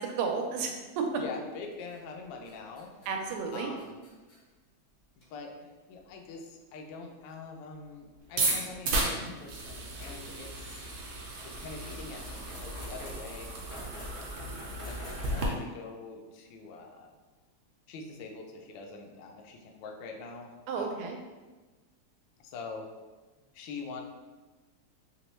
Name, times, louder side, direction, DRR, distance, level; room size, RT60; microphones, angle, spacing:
voice 1, 0.0-1.1 3.1-3.7 20.7-21.2, right 5 dB, 90° right, 3 dB, 1.5 m, -32 dB
voice 2, 1.2-2.9 3.5-4.0 5.3-10.8 11.4-14.1 14.8-17.1 17.9-21.1 22.4-22.9 23.5-24.0, left 4 dB, 75° left, 2 dB, 1.1 m, -44 dB
sound 1, 1.9-2.2 2.4-4.4 5.2-5.3 5.9-6.0 7.3-7.4 9.2-9.4 9.9-15.5, left 1 dB, 40° left, 0.7 m, -45 dB
sound 2, 8.2-15.5, right 2 dB, 70° right, 1.0 m, -35 dB
3.5 x 2.9 x 3.1 m, 1.3 s
omnidirectional pair, 2.4 m